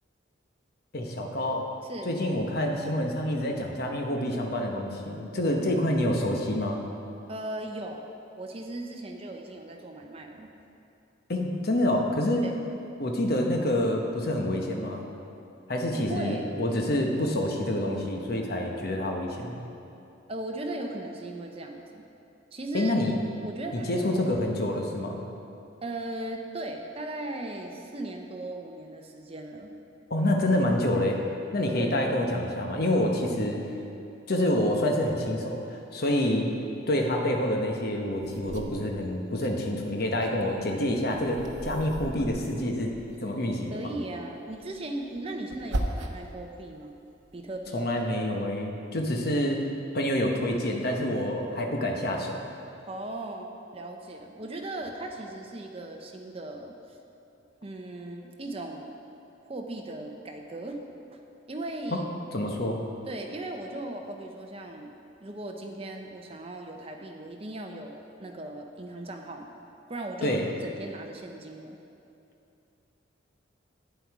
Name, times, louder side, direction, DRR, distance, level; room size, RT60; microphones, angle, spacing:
voice 1, 0.9-1.7 2.0-6.8 11.3-12.5 13.0-15.0 15.7-19.5 22.7-23.2 23.7-25.2 30.1-31.2 31.5-33.6 34.3-36.5 36.9-42.9 43.2-43.9 47.7-49.6 49.9-52.4 61.9-62.0 62.3-62.8 70.2-70.5, left 1 dB, 55° left, 1 dB, 1.0 m, -27 dB
voice 2, 1.8-2.1 7.3-8.1 8.4-10.5 12.4-12.5 15.9-16.6 20.3-22.0 22.5-23.0 23.4-24.3 25.8-29.7 31.8-32.0 43.7-47.0 47.3-47.8 52.9-56.8 57.6-58.9 59.4-60.8 61.1-61.2 61.5-62.1 63.1-64.9 65.2-69.5 69.9-71.8, right 2 dB, 30° right, 3 dB, 0.8 m, -38 dB
sound 1, 38.2-39.5 39.9-43.5 44.5-46.4 46.8-47.7, right 1 dB, 70° right, 0.8 m, -38 dB
9.4 x 7.9 x 4.8 m, 2.7 s
head